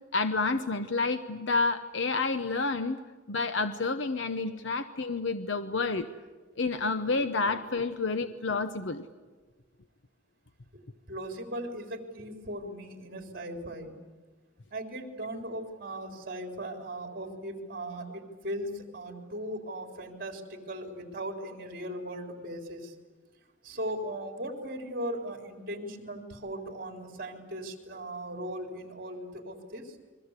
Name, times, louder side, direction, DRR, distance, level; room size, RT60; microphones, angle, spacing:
voice 1, 0.1-3.0 3.3-6.1 6.6-9.0, left 3 dB, 70° left, 9 dB, 1.0 m, -29 dB
voice 2, 11.1-14.0 14.7-22.9 23.6-29.9, right 1 dB, 50° right, 4 dB, 4.0 m, -38 dB
29.5 x 22.5 x 8.3 m, 1.3 s
head